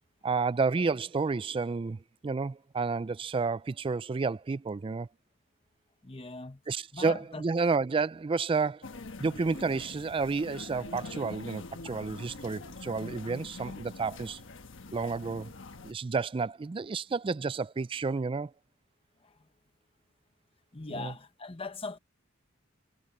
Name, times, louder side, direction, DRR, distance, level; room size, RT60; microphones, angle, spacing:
voice 1, 0.2-5.1 6.7-8.9 9.2-14.4 14.9-15.5 15.8-18.5 21.0-21.1, right 4 dB, 25° right, 0.3 m, -30 dB
voice 2, 6.0-6.6 6.9-7.4 11.8-11.9 19.2-19.5 20.7-22.0, left 3 dB, 25° left, 1.1 m, -41 dB
sound 1, 8.8-15.9, left 3 dB, 65° left, 1.3 m, -44 dB
head